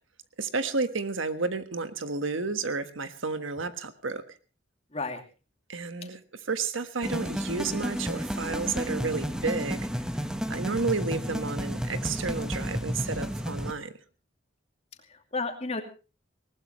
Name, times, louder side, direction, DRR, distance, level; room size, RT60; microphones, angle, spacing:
voice 1, 0.4-4.2 5.7-6.2 6.5-9.8 10.5-13.9, right 4 dB, 80° right, 10 dB, 1.4 m, -31 dB
voice 2, 4.9-5.2 6.0-6.1 15.1-15.8, left 3 dB, 30° left, 5 dB, 2.5 m, -32 dB
sound 1, 7.0-13.7, equal, 5° right, 1.2 m, -32 dB
20.0 x 19.0 x 3.1 m, 0.33 s
head